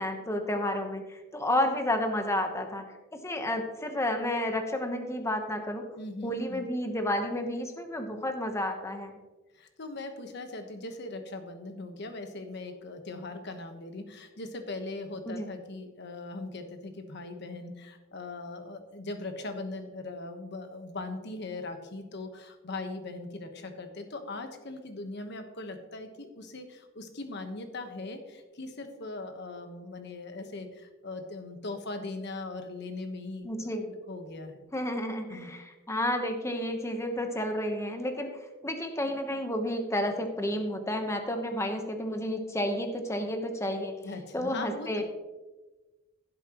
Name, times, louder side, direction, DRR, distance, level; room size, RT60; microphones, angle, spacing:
voice 1, 0.0-2.8 3.1-5.8 6.2-9.1 15.3-15.5 33.4-33.9 34.7-38.3 38.6-43.9 44.3-45.0, left 1 dB, 15° left, 5 dB, 1.0 m, -31 dB
voice 2, 6.0-6.7 9.5-34.7 35.3-35.5 44.0-45.0, left 2 dB, 60° left, 7 dB, 1.2 m, -40 dB
16.0 x 7.7 x 3.0 m, 1.2 s
head